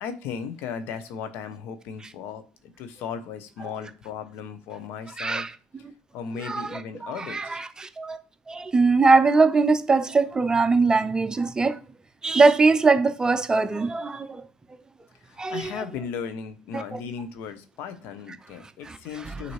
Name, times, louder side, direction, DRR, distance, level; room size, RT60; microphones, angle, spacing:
voice 1, 0.0-5.5 6.1-7.6 15.3-19.5, left 6 dB, 65° left, 0.7 m, -36 dB
voice 2, 5.2-5.5 6.4-8.2 8.5-11.8 12.2-14.4 15.4-15.8 16.7-17.0 18.9-19.0 19.2-19.5, right 4 dB, 20° right, 0.5 m, -22 dB
6.1 x 2.6 x 3.1 m
supercardioid pair, 85°, 4 cm